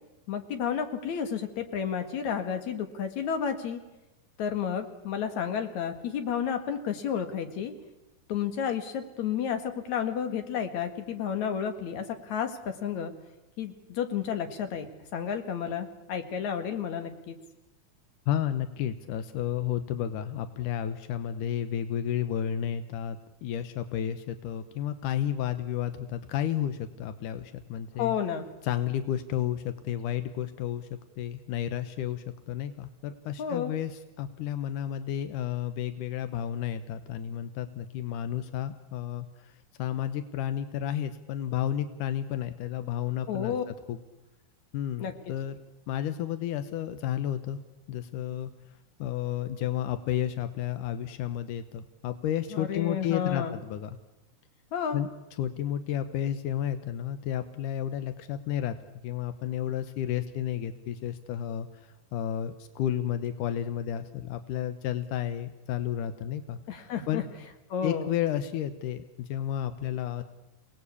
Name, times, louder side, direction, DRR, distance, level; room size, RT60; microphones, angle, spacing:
voice 1, 0.3-3.8 4.4-7.7 8.3-13.1 13.6-14.9 15.1-17.4 28.0-28.5 33.4-33.7 43.3-43.6 45.0-45.1 52.5-53.6 54.7-55.0 66.7-67.2 67.7-68.1, left 8 dB, 65° left, 7 dB, 3.2 m, -31 dB
voice 2, 18.3-28.1 28.6-30.9 31.2-39.5 39.8-44.0 44.7-45.6 45.9-47.6 47.9-48.5 49.0-53.9 54.9-58.8 59.0-66.6 67.1-67.2 67.8-70.2, left 10 dB, 90° left, 10 dB, 2.5 m, -32 dB
28.5 x 18.5 x 8.5 m, 1.0 s
omnidirectional pair, 3.5 m